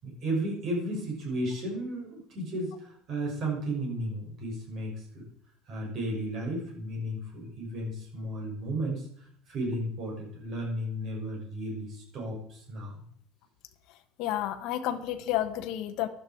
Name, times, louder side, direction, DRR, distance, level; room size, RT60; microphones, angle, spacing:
voice 1, 0.0-5.2 5.7-9.1 9.5-12.9, right 1 dB, 35° right, -1 dB, 6.3 m, -34 dB
voice 2, 14.2-16.1, left 12 dB, 55° left, 6 dB, 1.2 m, -30 dB
16.0 x 11.5 x 4.6 m, 0.64 s
cardioid pair, 175°, 0 cm